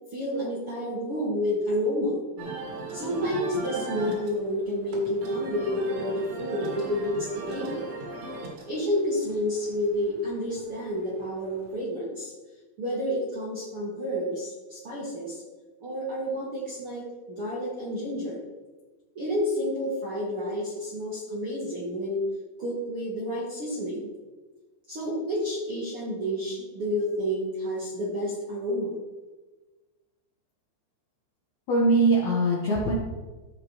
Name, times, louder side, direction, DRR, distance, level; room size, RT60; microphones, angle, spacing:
voice 1, 0.1-2.2 2.9-7.8 8.7-12.3 12.8-15.4 15.8-18.4 19.1-22.2 22.6-24.1 24.9-28.9, equal, 55° right, -7 dB, 1.6 m, -30 dB
sound 1, 2.4-11.8, right 2 dB, 75° right, 4.0 m, -38 dB
voice 2, 31.7-32.9, right 2 dB, 65° left, -5 dB, 1.8 m, -22 dB
15.5 x 5.3 x 3.1 m, 1.2 s
omnidirectional pair, 5.2 m